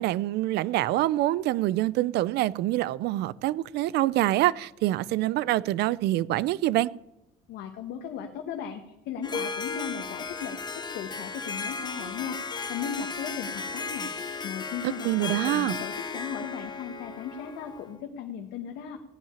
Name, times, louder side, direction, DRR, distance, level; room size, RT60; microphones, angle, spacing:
voice 1, 0.0-6.9 15.0-15.8, right 15 dB, 80° right, 0.5 m, -25 dB
voice 2, 7.5-19.0, left 7 dB, 90° left, 1.3 m, -37 dB
Harp, 9.2-18.0, left 4 dB, 25° left, 1.2 m, -35 dB
16.0 x 5.6 x 9.8 m
cardioid pair, 110°, 17 cm